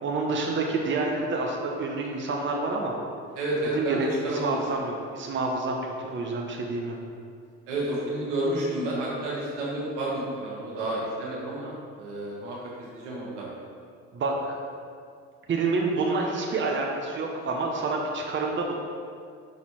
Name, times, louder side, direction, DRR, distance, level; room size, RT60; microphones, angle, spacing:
voice 1, 0.0-2.9 3.7-7.0 14.1-14.6 15.5-18.7, right 3 dB, 35° right, 0 dB, 0.9 m, -28 dB
voice 2, 3.4-4.6 7.7-11.7 12.0-13.4, right 1 dB, 85° right, -4 dB, 1.5 m, -30 dB
5.8 x 4.0 x 4.7 m, 2.2 s
hypercardioid pair, 65°, 35 cm